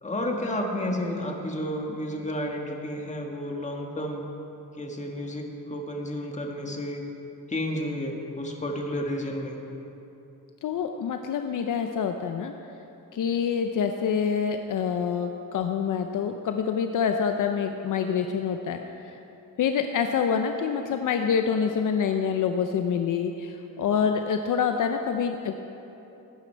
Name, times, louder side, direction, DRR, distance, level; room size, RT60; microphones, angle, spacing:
voice 1, 0.0-4.3 4.8-7.0 7.5-9.6, left 1 dB, 20° left, 1 dB, 1.6 m, -31 dB
voice 2, 10.6-12.5 13.1-19.2 19.6-25.6, left 7 dB, 60° left, 6 dB, 0.7 m, -26 dB
17.5 x 10.5 x 4.5 m, 3.0 s
cardioid pair, 135°, 35 cm